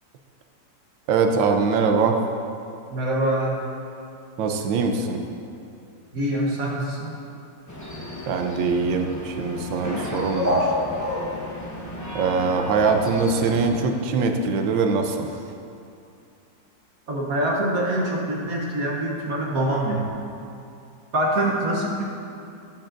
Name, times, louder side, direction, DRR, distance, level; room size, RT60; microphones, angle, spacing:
voice 1, 1.1-2.2 4.4-5.2 8.3-10.7 12.1-15.3, right 4 dB, 80° right, 4 dB, 1.4 m, -22 dB
voice 2, 2.9-3.6 6.1-7.1 17.1-20.1 21.1-22.0, right 1 dB, 55° right, -2 dB, 1.2 m, -24 dB
sound 1, 7.7-13.7, left 1 dB, 15° left, 0.7 m, -30 dB
13.0 x 7.0 x 2.6 m, 2.6 s
omnidirectional pair, 2.1 m